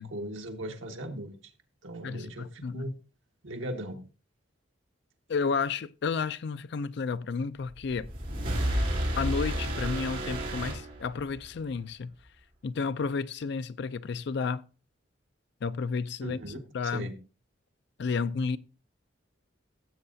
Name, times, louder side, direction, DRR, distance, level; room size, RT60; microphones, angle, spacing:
voice 1, 0.0-1.4 1.8-2.9 3.4-4.0 16.2-17.2, right 1 dB, 75° right, 1.5 m, -38 dB
voice 2, 2.0-2.9 5.3-8.1 9.2-12.1 12.6-14.6 15.6-16.4 16.7-17.1 18.0-18.6, left 5 dB, 60° left, 0.4 m, -31 dB
sound 1, 7.7-11.5, right 1 dB, 45° right, 2.9 m, -31 dB
15.5 x 7.6 x 2.7 m
head